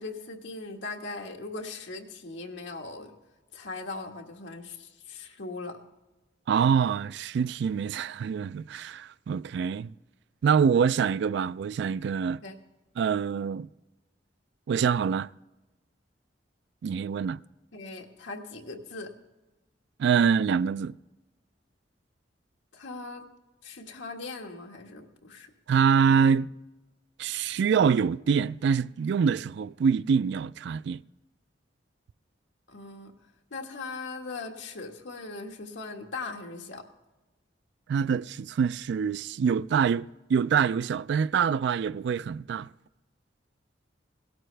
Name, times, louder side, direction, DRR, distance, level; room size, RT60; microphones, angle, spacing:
voice 1, 0.0-3.1 3.5-5.8 12.4-12.5 17.7-19.1 22.7-23.2 23.6-25.5 32.7-33.1 33.5-36.9, left 3 dB, 90° left, 1.5 m, -39 dB
voice 2, 6.5-9.9 10.4-12.4 13.0-13.7 14.7-15.3 16.8-17.4 20.0-20.9 25.7-26.5 27.2-31.0 37.9-42.7, right 6 dB, 65° right, 0.3 m, -25 dB
17.5 x 12.0 x 3.3 m
head